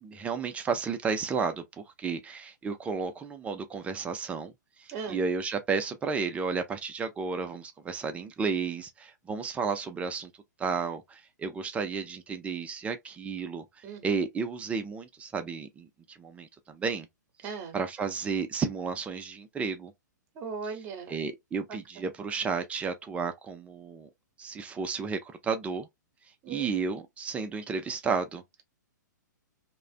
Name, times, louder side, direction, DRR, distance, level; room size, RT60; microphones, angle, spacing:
voice 1, 0.0-4.5 4.8-10.3 10.6-13.6 14.0-17.1 17.7-19.9 21.1-24.1 24.4-25.9 26.5-28.6, right 5 dB, 15° right, 0.5 m, -32 dB
voice 2, 17.4-17.8 20.3-21.2 26.4-26.7, right 5 dB, 30° right, 0.9 m, -38 dB
2.4 x 2.2 x 2.5 m
figure-of-eight pair, 120°, 10 cm